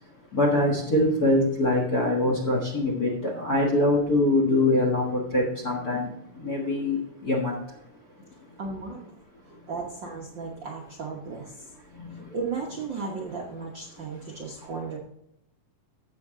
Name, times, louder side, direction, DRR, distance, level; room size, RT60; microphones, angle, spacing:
voice 1, 0.3-7.8 11.9-12.3 14.2-14.3 14.6-14.7, left 1 dB, 45° left, 0 dB, 1.3 m, -24 dB
voice 2, 8.6-9.0 9.7-11.7 12.3-15.0, right 4 dB, 60° right, -1 dB, 1.2 m, -35 dB
12.0 x 7.9 x 3.7 m, 0.79 s
omnidirectional pair, 3.7 m